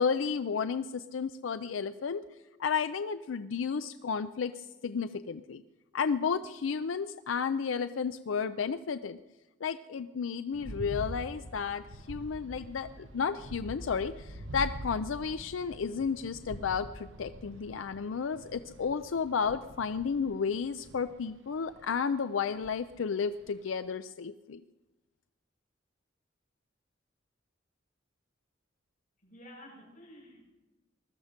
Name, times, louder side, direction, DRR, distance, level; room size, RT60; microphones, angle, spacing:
voice 1, 0.0-2.2 2.6-4.5 4.8-5.6 5.9-9.2 9.6-24.6, left 6 dB, 85° left, 11 dB, 0.5 m, -32 dB
sound 1, 10.5-21.9 22.6-23.0 23.4-23.5, right 1 dB, 75° right, 1.1 m, -45 dB
voice 2, 29.2-30.4, equal, 45° left, -3 dB, 7.2 m, -51 dB
20.5 x 13.0 x 5.1 m, 1.1 s
head